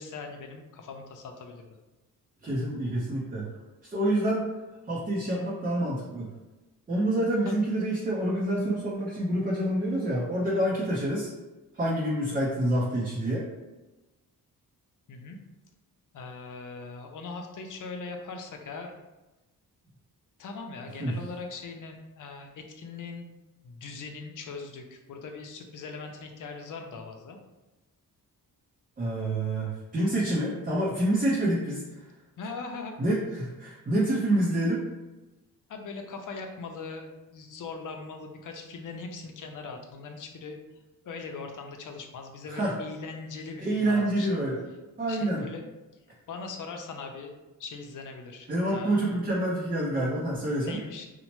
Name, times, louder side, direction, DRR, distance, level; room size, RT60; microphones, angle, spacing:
voice 1, 0.0-1.7 7.5-7.6 10.9-11.1 15.1-15.4 16.1-19.0 20.4-23.3 23.6-27.4 32.4-33.0 35.7-40.6 41.0-44.3 45.1-45.6 46.3-47.3 47.6-49.3 50.6-51.1, left 4 dB, 60° left, 3 dB, 0.5 m, -40 dB
voice 2, 2.4-3.5 3.8-4.4 4.9-6.3 6.9-11.3 11.7-13.4 21.0-21.1 29.0-31.8 33.0-34.8 42.5-42.8 43.6-44.6 45.0-45.5 48.5-50.8, right 1 dB, 25° right, -5 dB, 0.5 m, -27 dB
2.8 x 2.1 x 2.9 m, 1.1 s
cardioid pair, 90°, 36 cm